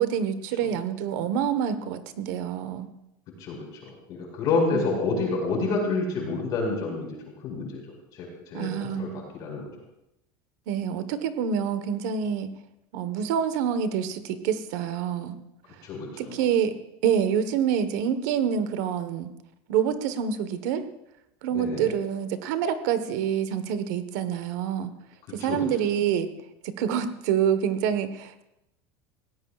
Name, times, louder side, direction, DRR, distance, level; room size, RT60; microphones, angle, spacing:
voice 1, 0.0-2.9 4.7-4.9 8.5-9.2 10.7-12.5 12.9-15.4 16.2-16.7 17.0-19.3 19.7-20.8 21.4-24.9 25.3-26.3 26.8-28.4, right 8 dB, 70° right, 11 dB, 1.3 m, -27 dB
voice 2, 3.4-7.1 7.4-7.8 8.1-9.6 15.8-16.4 21.5-22.0 25.4-25.7, left 3 dB, 40° left, -1 dB, 5.1 m, -29 dB
21.5 x 17.0 x 2.4 m, 0.87 s
supercardioid pair, 160°, 10 cm